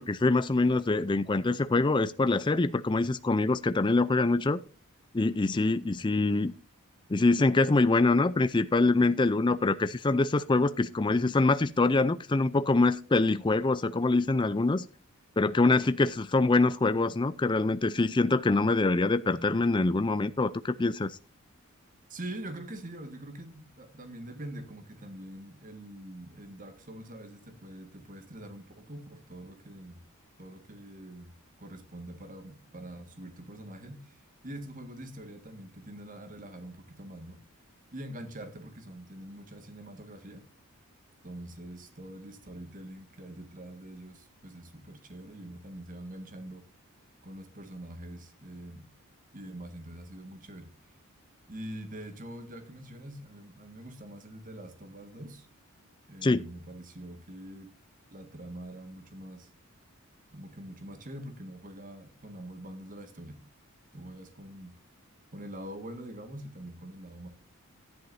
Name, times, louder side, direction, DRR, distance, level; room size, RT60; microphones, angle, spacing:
voice 1, 0.0-4.6 5.1-6.5 7.1-14.8 15.4-21.2 56.2-56.4, left 3 dB, 20° left, 0.4 m, -25 dB
voice 2, 22.1-30.0 30.4-31.3 31.6-37.4 37.9-40.4 41.2-46.6 47.2-48.9 49.3-50.7 51.5-55.5 56.1-57.7 58.1-59.5 60.3-63.4 63.9-64.7 65.3-67.3, right 1 dB, 35° right, 1.8 m, -44 dB
14.5 x 10.5 x 2.6 m
head